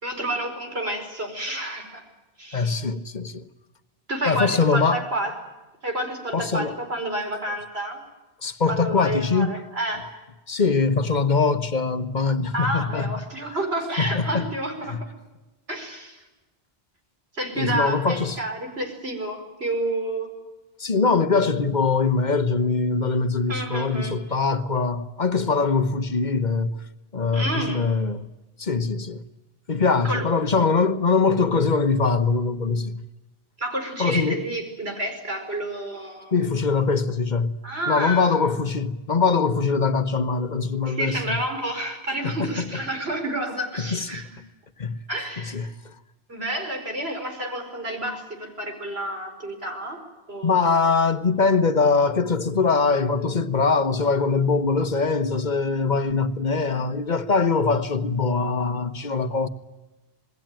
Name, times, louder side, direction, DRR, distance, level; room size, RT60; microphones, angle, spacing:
voice 1, 0.0-2.0 2.4-2.7 4.1-5.3 5.8-8.0 8.7-10.1 12.5-15.1 15.7-16.2 17.3-20.3 23.5-24.2 27.3-27.8 30.0-30.3 33.6-36.4 37.6-38.5 40.9-44.4 45.1-45.7 46.3-50.0 50.3-50.8, right 1 dB, 75° right, 5.3 m, -30 dB
voice 2, 2.5-3.4 4.2-5.0 6.3-6.7 8.4-9.6 10.5-13.1 14.0-14.5 14.9-15.0 17.6-18.4 20.8-26.7 27.1-28.3 28.6-29.2 29.7-33.0 34.0-34.4 36.3-37.5 37.9-41.4 42.2-42.7 43.8-44.2 44.8-45.0 45.4-45.9 50.4-59.5, left 4 dB, 45° left, 1.3 m, -22 dB
27.5 x 20.0 x 9.0 m
omnidirectional pair, 1.1 m